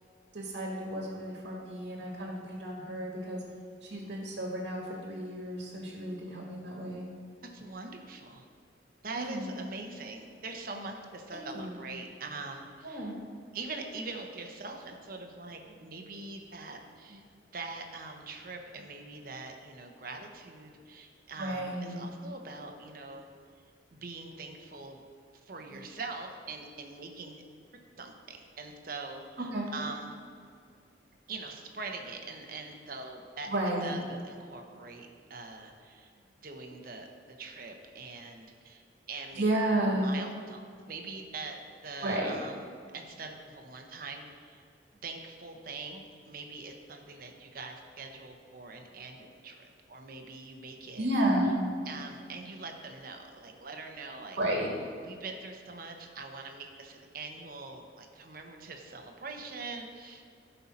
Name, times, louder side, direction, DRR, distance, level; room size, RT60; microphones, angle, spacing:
voice 1, 0.3-3.4 3.8-7.1 9.2-9.5 11.3-11.7 12.8-13.2 21.4-22.0 25.7-25.8 29.5-29.7 33.5-34.0 39.3-40.1 42.0-42.4 51.0-51.6 54.4-54.7, right 1 dB, 70° right, -2 dB, 1.6 m, -32 dB
voice 2, 7.5-8.4 9.0-13.1 13.5-17.2 17.5-23.3 23.9-25.0 25.4-27.4 28.0-30.1 31.3-33.5 33.8-36.1 36.4-37.1 37.4-39.4 39.8-41.6 41.8-42.7 42.9-44.6 45.0-51.1 51.8-54.4 55.0-60.2, right 3 dB, 50° right, 3 dB, 1.0 m, -43 dB
12.5 x 5.6 x 4.2 m, 2.2 s
head